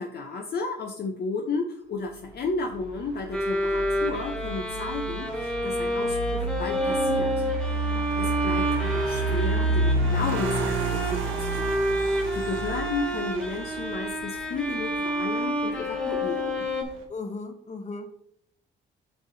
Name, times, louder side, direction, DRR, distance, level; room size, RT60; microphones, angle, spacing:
voice 1, 0.0-16.7, left 3 dB, 55° left, 2 dB, 0.8 m, -33 dB
sound 1, 2.2-17.0, right 2 dB, 85° right, 1.2 m, -31 dB
Bowed string instrument, 3.3-16.8, equal, 5° left, 1.2 m, -29 dB
voice 2, 17.1-18.1, left 3 dB, 35° left, 6 dB, 1.2 m, -36 dB
7.7 x 5.5 x 2.7 m, 0.69 s
cardioid pair, 90°, 20 cm